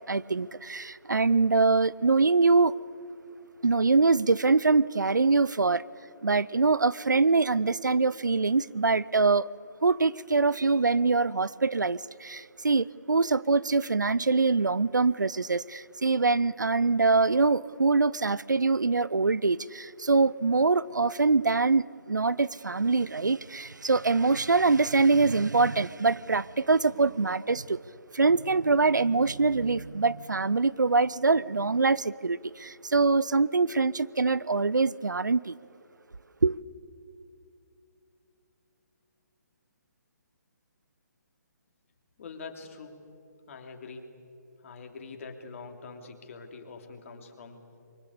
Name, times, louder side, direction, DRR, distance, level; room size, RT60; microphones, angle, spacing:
voice 1, 0.1-2.7 3.6-5.8 6.2-9.5 9.8-27.8 28.1-35.5 36.4-36.6, right 3 dB, 80° right, 0.6 m, -24 dB
voice 2, 42.2-43.0 43.5-44.1 44.6-47.8, left 4 dB, 45° left, 3.3 m, -44 dB
25.0 x 24.0 x 8.4 m
figure-of-eight pair, 135°, 10 cm